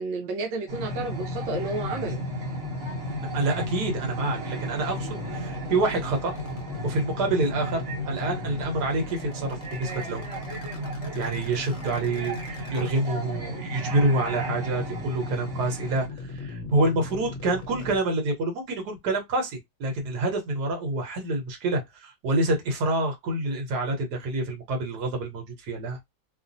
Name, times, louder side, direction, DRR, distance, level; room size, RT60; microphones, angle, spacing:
voice 1, 0.0-2.2, right 3 dB, 90° right, 1.3 m, -31 dB
sound 1, 0.7-18.0, left 3 dB, 50° left, 1.0 m, -36 dB
sound 2, 0.7-16.1, right 2 dB, 50° right, 1.1 m, -36 dB
voice 2, 3.1-6.3 6.8-10.3 11.1-16.1 16.3-26.0, right 2 dB, 70° right, 1.5 m, -27 dB
3.2 x 2.1 x 2.6 m
omnidirectional pair, 1.9 m